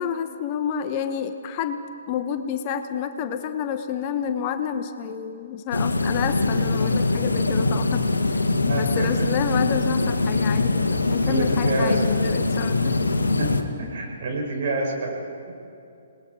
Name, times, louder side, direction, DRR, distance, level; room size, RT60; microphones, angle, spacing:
voice 1, 0.0-1.8 2.1-13.1, left 8 dB, 35° left, 8 dB, 1.0 m, -29 dB
sound 1, 5.7-13.6, left 3 dB, 80° left, 1.5 m, -23 dB
voice 2, 8.6-9.1 11.3-12.0 13.4-15.1 15.5-15.6, right 2 dB, 50° right, -1 dB, 5.5 m, -28 dB
28.0 x 20.0 x 4.8 m, 2.6 s
figure-of-eight pair, 130°, 0 cm